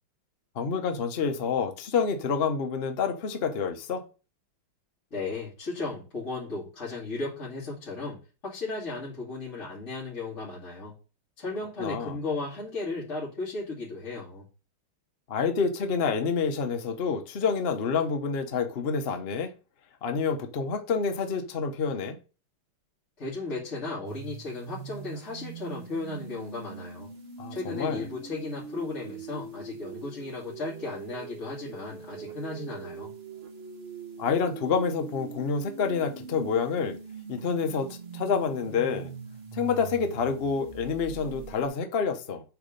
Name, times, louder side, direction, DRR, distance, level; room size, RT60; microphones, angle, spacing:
voice 1, 0.5-4.0 11.8-12.2 15.3-19.5 20.0-22.2 27.4-28.1 34.2-37.0 37.3-37.9 38.1-39.1 39.5-42.4, left 5 dB, 60° left, 0.6 m, -28 dB
voice 2, 5.1-10.9 11.4-14.5 23.2-27.1 27.5-33.1, left 3 dB, 35° left, 2.5 m, -35 dB
sound 1, 24.0-41.7, right 6 dB, 55° right, 0.6 m, -42 dB
8.1 x 3.6 x 5.1 m
omnidirectional pair, 2.4 m